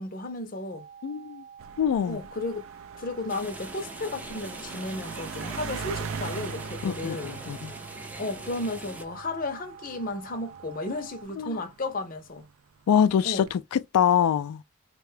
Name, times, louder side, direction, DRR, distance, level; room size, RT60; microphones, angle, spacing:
voice 1, 0.0-0.9 2.1-2.6 2.9-7.4 8.2-12.5 13.2-13.4, left 2 dB, 40° left, 0.6 m, -34 dB
sound 1, 0.7-11.2, right 7 dB, 45° right, 0.9 m, -48 dB
voice 2, 1.0-1.4 1.8-2.2 6.8-7.7 11.4-11.6 12.9-14.6, left 8 dB, 85° left, 0.3 m, -24 dB
sound 2, 1.6-12.3 13.1-13.5, right 5 dB, 70° right, 0.4 m, -41 dB
sound 3, 3.3-9.0, right 1 dB, 5° right, 0.4 m, -42 dB
3.6 x 2.2 x 3.2 m
head